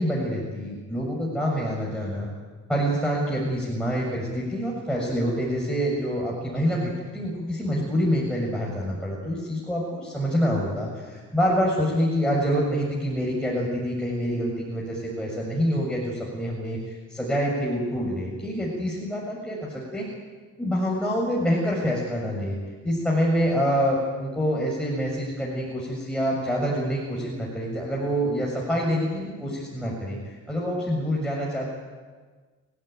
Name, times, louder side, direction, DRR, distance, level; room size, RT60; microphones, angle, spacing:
voice 1, 0.0-2.3 2.7-20.0 20.6-22.5 22.8-31.7, equal, 5° left, -4 dB, 6.9 m, -26 dB
29.0 x 15.0 x 9.4 m, 1.4 s
cardioid pair, 90°, 30 cm